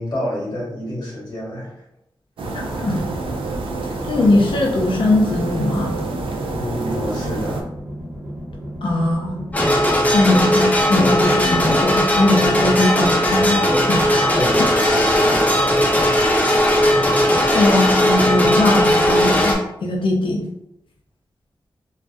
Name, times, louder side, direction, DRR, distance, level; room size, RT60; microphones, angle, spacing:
voice 1, 0.0-1.7 6.5-7.7 14.3-15.9, left 1 dB, 50° left, -5 dB, 1.0 m, -29 dB
sound 1, 2.4-7.6, right 3 dB, 85° right, 0.4 m, -27 dB
voice 2, 2.5-3.0 4.1-6.0 8.8-9.4 10.1-14.2 14.6-14.7 17.5-20.4, left 2 dB, 75° left, -1 dB, 0.5 m, -20 dB
sound 2, 4.0-12.3, equal, 15° right, 0.9 m, -35 dB
sound 3, 9.5-19.5, equal, 20° left, 0.5 m, -17 dB
2.3 x 2.1 x 2.5 m, 0.84 s
wide cardioid pair, 125°, 9 cm